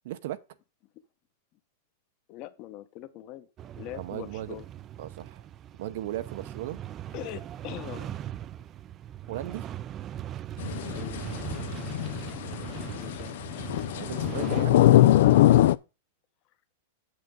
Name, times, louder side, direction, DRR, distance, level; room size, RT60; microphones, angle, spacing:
voice 1, 0.0-0.4 3.9-4.6 5.0-5.4 5.8-6.8 9.3-9.7 13.9-14.8, right 13 dB, 55° right, 0.8 m, -36 dB
voice 2, 2.3-3.5 3.8-4.6 7.1-8.2 10.9-11.2 12.9-13.4, left 13 dB, 35° left, 1.0 m, -41 dB
sound 1, 3.6-14.6, right 11 dB, 20° right, 0.3 m, -40 dB
sound 2, 10.6-15.7, left 14 dB, 60° left, 0.4 m, -22 dB
8.1 x 7.7 x 3.7 m
supercardioid pair, 165°, 0 cm